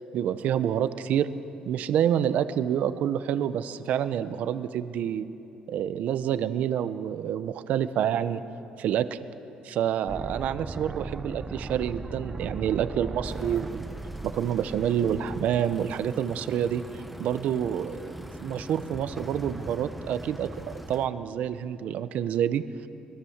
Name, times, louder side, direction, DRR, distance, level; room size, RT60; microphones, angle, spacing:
voice 1, 0.1-1.3 1.7-5.3 5.7-8.4 8.8-9.2 9.6-13.8 14.2-16.8 17.2-22.9, right 9 dB, 70° right, 12 dB, 0.8 m, -28 dB
sound 1, 10.1-16.1, right 3 dB, 20° right, 0.8 m, -38 dB
sound 2, 13.2-21.1, equal, ahead, 1.4 m, -41 dB
24.0 x 21.5 x 7.3 m, 2.9 s
cardioid pair, 135°, 3 cm